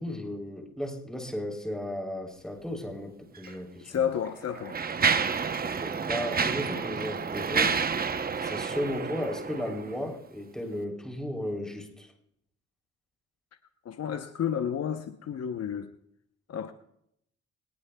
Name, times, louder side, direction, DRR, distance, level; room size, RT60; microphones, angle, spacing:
voice 1, 0.0-4.1 5.6-8.1 8.4-12.1, left 1 dB, ahead, 3.4 m, -35 dB
Mechanisms, 3.4-3.5 4.2-10.0, right 5 dB, 30° right, 0.8 m, -29 dB
voice 2, 3.5-4.8 13.8-15.9 16.5-16.7, left 8 dB, 55° left, 0.9 m, -31 dB
22.0 x 19.5 x 2.3 m
cardioid pair, 90°, 30 cm